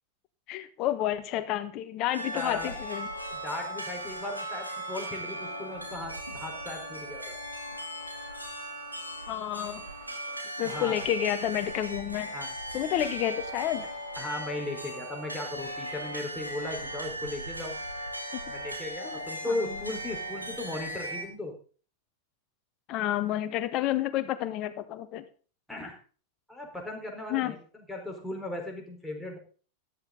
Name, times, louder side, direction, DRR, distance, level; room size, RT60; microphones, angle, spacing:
voice 1, 0.5-3.1 9.3-9.8 10.6-12.3 12.7-13.9 19.0-19.2 19.5-19.7 22.9-25.2 27.3-27.6, left 12 dB, 40° left, 12 dB, 1.3 m, -30 dB
sound 1, 2.1-21.2, right 1 dB, 85° right, 2.7 m, -38 dB
voice 2, 2.3-2.7 3.3-7.4 10.6-11.0 12.3-12.6 14.2-17.8 18.5-21.5 25.7-26.0 26.5-29.4, left 2 dB, ahead, -1 dB, 4.3 m, -37 dB
13.5 x 11.5 x 3.9 m, 0.39 s
figure-of-eight pair, 90°, 0 cm